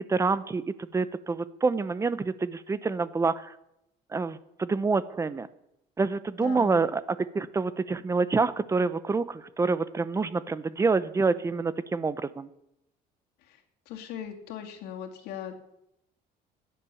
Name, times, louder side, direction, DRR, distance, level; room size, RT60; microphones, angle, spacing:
voice 1, 0.1-0.6 0.9-3.5 4.1-5.5 6.0-7.0 7.3-12.5, right 4 dB, 20° right, 15 dB, 0.8 m, -27 dB
voice 2, 6.4-6.9 13.5-15.5, left 9 dB, 85° left, 3 dB, 2.6 m, -39 dB
16.0 x 10.5 x 7.1 m, 0.83 s
cardioid pair, 135°, 16 cm